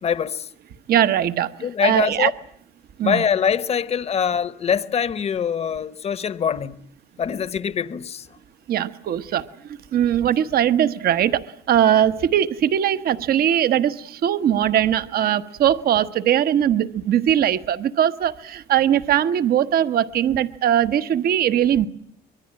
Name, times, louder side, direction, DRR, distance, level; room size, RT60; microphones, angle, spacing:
voice 1, 0.0-0.5 1.6-2.3 3.0-6.8 7.2-8.3, left 7 dB, 35° left, 1.0 m, -23 dB
voice 2, 0.9-1.5 1.8-2.3 3.0-3.2 8.7-21.9, right 10 dB, 60° right, 1.1 m, -20 dB
25.0 x 23.0 x 8.8 m
cardioid pair, 145°, 18 cm